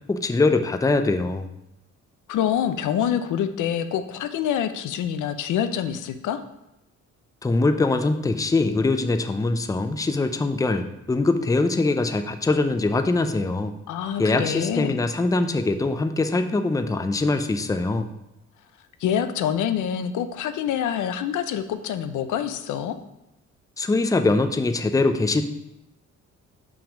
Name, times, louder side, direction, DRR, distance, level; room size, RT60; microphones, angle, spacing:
voice 1, 0.1-1.5 7.4-13.7 14.2-18.1 23.8-25.4, left 3 dB, 10° left, 8 dB, 0.5 m, -22 dB
voice 2, 2.3-6.4 13.9-15.0 19.0-23.0, left 9 dB, 80° left, 9 dB, 0.7 m, -26 dB
6.0 x 5.4 x 5.0 m, 0.87 s
cardioid pair, 90°, 30 cm